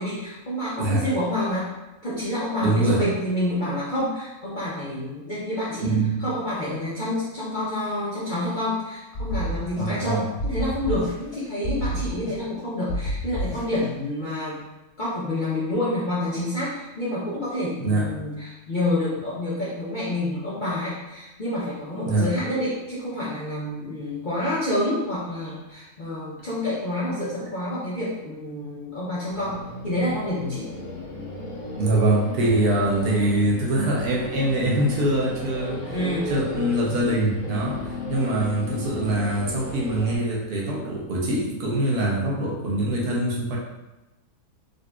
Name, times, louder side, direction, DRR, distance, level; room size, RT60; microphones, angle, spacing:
voice 1, 0.0-1.7 2.0-14.6 15.0-30.7 35.9-36.3, left 1 dB, 50° left, -9 dB, 0.6 m, -28 dB
voice 2, 2.6-3.0 5.8-6.2 9.8-10.3 17.8-18.1 22.1-22.3 31.8-43.6, right 2 dB, 85° right, -3 dB, 1.3 m, -24 dB
sound 1, 9.1-10.1 10.4-11.4 11.6-12.6 12.9-13.9, equal, 15° left, 1.4 m, -29 dB
sound 2, 29.2-40.2, left 2 dB, 70° left, 1.5 m, -34 dB
3.9 x 2.6 x 2.2 m, 1.0 s
omnidirectional pair, 1.6 m